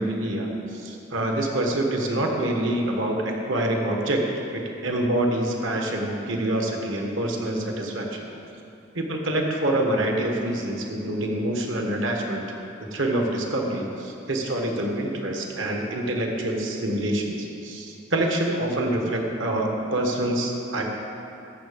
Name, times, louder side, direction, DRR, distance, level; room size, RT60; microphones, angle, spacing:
voice 1, 0.0-4.2 4.5-8.3 8.9-12.4 12.9-20.8, right 1 dB, 75° right, 1 dB, 1.5 m, -26 dB
13.5 x 7.2 x 5.2 m, 2.7 s
head